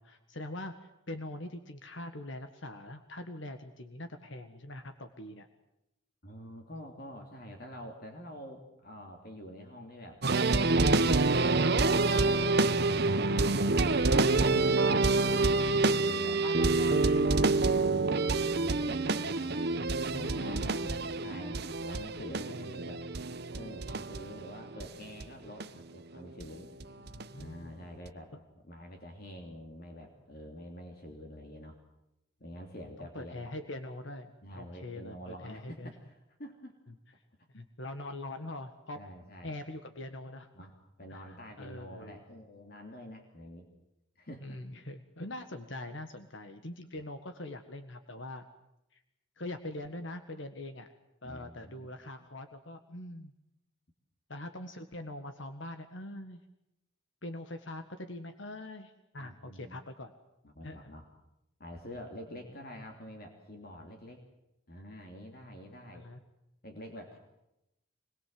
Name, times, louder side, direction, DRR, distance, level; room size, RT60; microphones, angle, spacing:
voice 1, 0.0-5.5 13.8-15.3 16.4-17.6 20.1-21.4 26.9-27.9 28.3-28.4 33.0-35.9 37.5-39.0 39.4-40.5 41.1-42.2 44.4-48.4 48.9-49.0 49.4-50.9 51.2-53.3 54.3-56.4 57.2-60.1 60.6-60.9 65.9-66.2, left 1 dB, 60° left, 7 dB, 1.7 m, -43 dB
voice 2, 6.2-13.0 13.3-14.2 15.2-16.4 17.9-23.1 23.6-26.7 27.3-31.8 32.4-33.4 34.4-36.8 37.4-37.5 39.0-39.6 40.5-43.7 44.1-44.6 51.2-51.9 59.2-59.8 60.4-61.1 61.6-64.2 64.7-66.1 66.6-67.2, equal, 45° left, 2 dB, 3.1 m, -47 dB
sound 1, 10.2-24.9 25.2-25.3 25.6-25.7 26.4-26.5 26.8-27.4 28.1-28.2, right 3 dB, 50° right, 1.0 m, -27 dB
26.0 x 21.5 x 7.8 m, 0.89 s
head